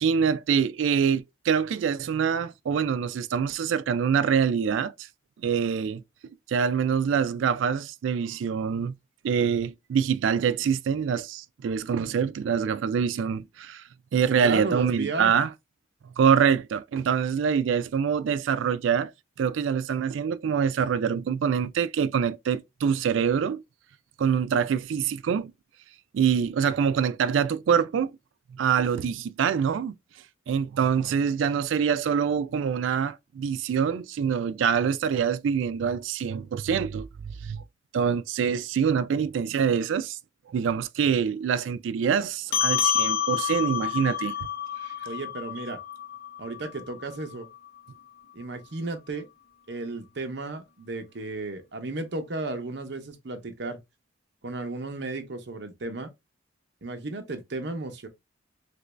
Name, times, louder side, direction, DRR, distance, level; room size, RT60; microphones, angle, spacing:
voice 1, 0.0-4.9 5.4-6.0 6.5-8.9 9.2-13.8 14.1-15.5 16.2-19.1 19.4-23.6 24.2-25.5 26.1-28.1 28.5-30.0 30.5-37.6 37.9-40.2 40.5-44.5, right 7 dB, 80° right, 0.3 m, -25 dB
voice 2, 14.3-15.3 45.1-45.8 46.4-47.5 48.3-49.3 49.7-53.8 54.4-56.1 56.8-58.1, right 2 dB, 60° right, 0.7 m, -34 dB
sound 1, 42.5-47.3, left 9 dB, 55° left, 0.8 m, -28 dB
3.0 x 2.6 x 3.2 m
head